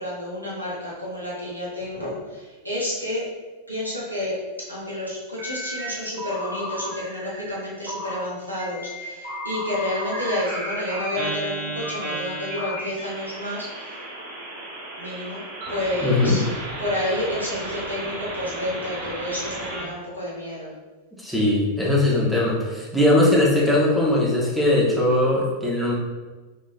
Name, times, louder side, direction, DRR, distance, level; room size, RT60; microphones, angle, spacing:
voice 1, 0.0-3.3 3.7-14.0 15.0-16.4 16.8-20.7, left 1 dB, 85° right, -6 dB, 1.1 m, -30 dB
sound 1, 5.4-5.9 6.2-7.6 7.9-8.2 8.6-19.9, right 1 dB, 50° right, 0.9 m, -33 dB
voice 2, 16.0-16.4 21.2-25.9, left 1 dB, ahead, -6 dB, 0.9 m, -20 dB
4.1 x 3.0 x 2.4 m, 1.3 s
figure-of-eight pair, 90°, 0 cm